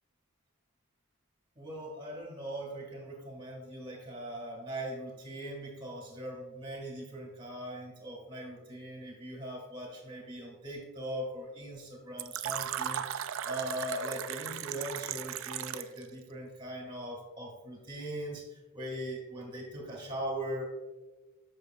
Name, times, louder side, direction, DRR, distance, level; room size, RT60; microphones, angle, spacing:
voice 1, 1.6-13.2 13.4-20.7, right 1 dB, 25° right, -1 dB, 1.6 m, -40 dB
Fill (with liquid), 12.2-16.0, right 10 dB, 65° right, 0.3 m, -36 dB
8.1 x 6.0 x 2.3 m, 1.2 s
head